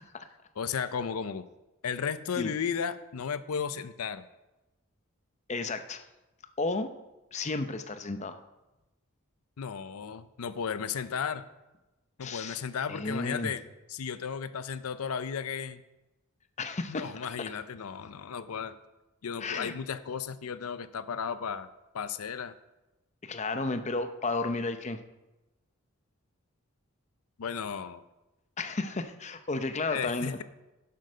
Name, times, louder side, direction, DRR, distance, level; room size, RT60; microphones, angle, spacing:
voice 1, 0.6-1.5 1.8-4.3 9.6-11.4 12.2-13.6 13.9-15.8 16.9-18.8 19.2-21.7 21.9-22.5 27.4-28.0 29.9-30.4, left 6 dB, 90° left, 14 dB, 0.5 m, -34 dB
voice 2, 5.5-6.0 6.6-6.9 7.3-8.4 12.2-12.6 12.9-13.5 16.6-17.1 19.4-19.7 23.2-25.0 28.6-30.4, left 3 dB, 30° left, 9 dB, 0.7 m, -33 dB
11.5 x 7.7 x 5.5 m, 1.0 s
head